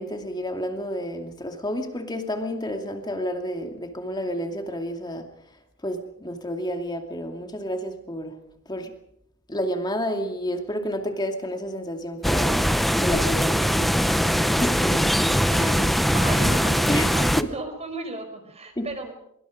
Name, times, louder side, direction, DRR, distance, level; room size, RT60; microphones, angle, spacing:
voice 1, 0.0-5.3 5.8-8.4 8.7-8.9 9.5-12.7 13.0-15.4 16.4-16.5 16.9-17.5 18.8-18.9, equal, 20° left, 5 dB, 2.5 m, -30 dB
sound 1, 12.2-17.4, equal, ahead, 0.8 m, -21 dB
voice 2, 15.5-19.1, right 2 dB, 30° right, 6 dB, 4.8 m, -35 dB
24.5 x 23.5 x 5.2 m, 0.76 s
head